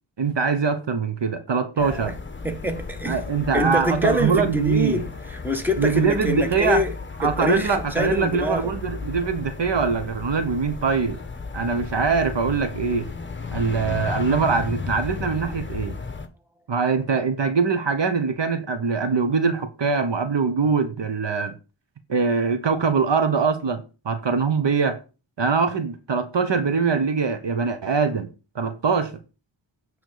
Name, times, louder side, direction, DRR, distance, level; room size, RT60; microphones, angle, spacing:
voice 1, 0.2-2.1 3.1-5.0 5.8-6.8 7.2-11.2 11.5-13.1 13.5-16.0 16.7-21.5 22.1-25.0 25.4-28.3 28.5-29.2, right 5 dB, 60° right, 1.2 m, -23 dB
sound 1, 1.8-16.3, left 4 dB, 25° left, 1.1 m, -34 dB
voice 2, 1.8-2.1 2.4-3.2 3.5-6.9 7.2-8.7, equal, 5° right, 1.5 m, -25 dB
9.3 x 3.5 x 6.8 m
wide cardioid pair, 75°, 48 cm